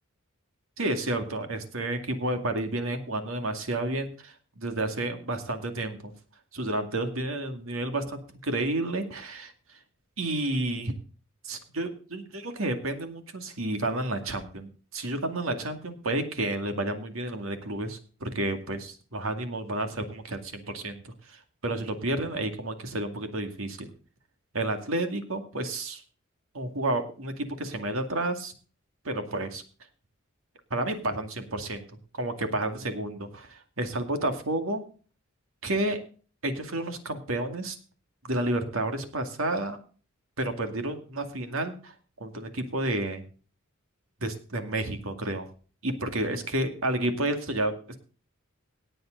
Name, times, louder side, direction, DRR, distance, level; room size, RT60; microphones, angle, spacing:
voice 1, 0.8-6.1 6.5-9.8 10.2-10.9 11.4-23.9 24.5-26.0 26.5-28.5 29.0-29.6 30.7-31.8 32.1-34.8 35.6-36.0 36.4-37.8 38.2-39.8 40.4-41.9 42.2-43.2 44.2-45.5 45.8-48.0, right 1 dB, 70° right, 7 dB, 2.2 m, -31 dB
18.0 x 7.8 x 3.9 m, 0.37 s
head